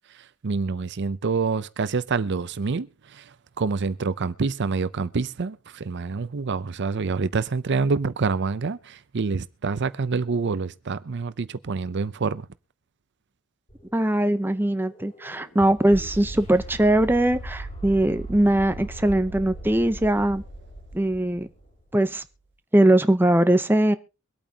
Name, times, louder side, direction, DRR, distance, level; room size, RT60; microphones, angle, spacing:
voice 1, 0.4-2.9 3.2-3.3 3.6-12.4, right 4 dB, 55° right, 0.6 m, -26 dB
sound 1, 13.7-21.8, right 1 dB, 35° left, 4.3 m, -39 dB
voice 2, 13.9-20.4 20.9-21.5 21.9-22.2 22.7-23.9, right 1 dB, 10° right, 0.7 m, -21 dB
24.0 x 8.8 x 2.8 m
head